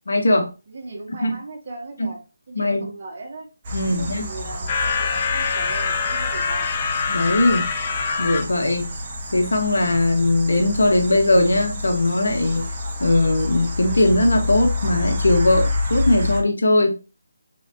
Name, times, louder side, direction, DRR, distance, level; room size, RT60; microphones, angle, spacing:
voice 1, 0.1-0.5 1.2-1.3 2.0-2.1 2.6-2.9 3.7-4.3 7.1-7.7 8.2-8.9 9.3-12.7 13.0-17.0, left 2 dB, 80° left, 1.2 m, -19 dB
voice 2, 0.7-2.2 2.5-3.5 3.8-6.7 8.7-9.0, right 2 dB, 45° right, 1.5 m, -38 dB
sound 1, 3.6-16.4, left 2 dB, 30° right, 1.3 m, -28 dB
sound 2, 4.7-8.5, left 6 dB, 30° left, 0.5 m, -24 dB
4.1 x 3.9 x 2.6 m
figure-of-eight pair, 160°, 0 cm